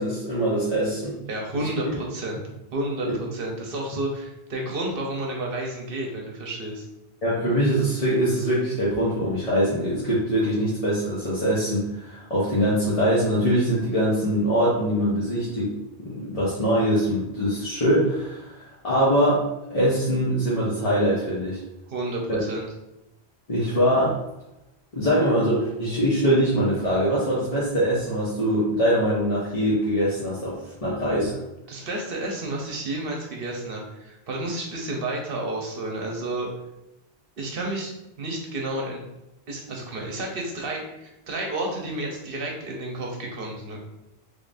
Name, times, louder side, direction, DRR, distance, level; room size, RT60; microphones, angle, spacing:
voice 1, 0.0-1.2 3.0-3.1 7.2-15.7 16.0-19.4 19.7-21.6 22.3-22.4 23.5-24.2 24.9-31.4, equal, 35° left, -8 dB, 0.9 m, -23 dB
voice 2, 1.3-2.4 2.7-6.9 21.9-22.7 31.7-36.5 37.4-39.0 39.5-43.8, right 1 dB, 60° right, 0 dB, 1.0 m, -31 dB
3.7 x 3.4 x 2.5 m, 0.90 s
omnidirectional pair, 1.1 m